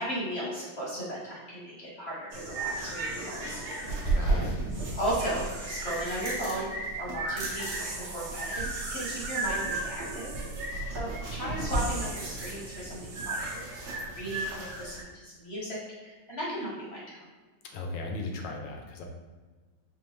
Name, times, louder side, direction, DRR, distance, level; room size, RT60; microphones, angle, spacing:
voice 1, 0.0-3.7 4.2-4.5 4.9-10.3 10.9-13.6 13.9-17.3, right 1 dB, 45° left, -6 dB, 0.9 m, -36 dB
sound 1, 2.3-15.0, right 2 dB, 90° right, 1.7 m, -33 dB
voice 2, 4.1-4.5 17.7-19.1, left 2 dB, 75° left, 2 dB, 1.1 m, -36 dB
5.2 x 2.3 x 3.0 m, 1.3 s
omnidirectional pair, 2.3 m